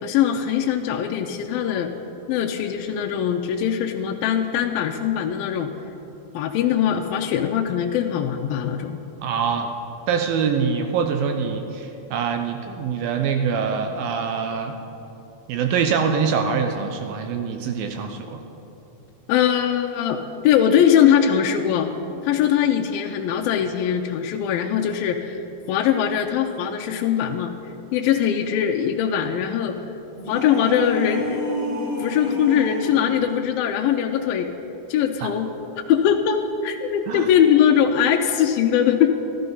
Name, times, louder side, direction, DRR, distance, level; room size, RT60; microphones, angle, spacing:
voice 1, 0.0-1.9 2.3-5.7 6.3-9.0 19.3-20.2 20.4-21.9 22.2-27.5 27.9-29.8 30.3-31.4 32.0-34.5 34.9-35.5 35.9-39.2, left 9 dB, 80° left, 2 dB, 2.3 m, -21 dB
voice 2, 9.2-9.7 10.1-14.7 15.5-18.4 35.2-35.3 37.1-37.3, right 6 dB, 80° right, 5 dB, 2.3 m, -24 dB
sound 1, 30.1-33.1, equal, 30° right, 4.1 m, -29 dB
14.5 x 12.5 x 5.4 m, 2.9 s
omnidirectional pair, 4.5 m